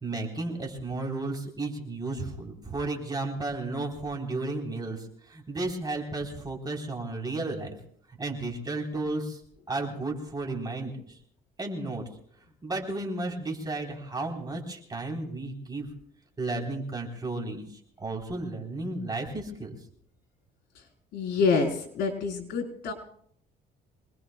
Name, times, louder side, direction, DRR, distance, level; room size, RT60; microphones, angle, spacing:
voice 1, 0.0-7.7 8.2-9.4 9.7-10.9 11.6-12.0 12.6-15.9 16.4-17.6 18.0-19.7, right 2 dB, 25° right, 0 dB, 3.9 m, -33 dB
voice 2, 21.1-22.9, left 4 dB, 75° left, 3 dB, 4.3 m, -27 dB
26.0 x 20.0 x 2.3 m, 0.66 s
cardioid pair, 110°, 17 cm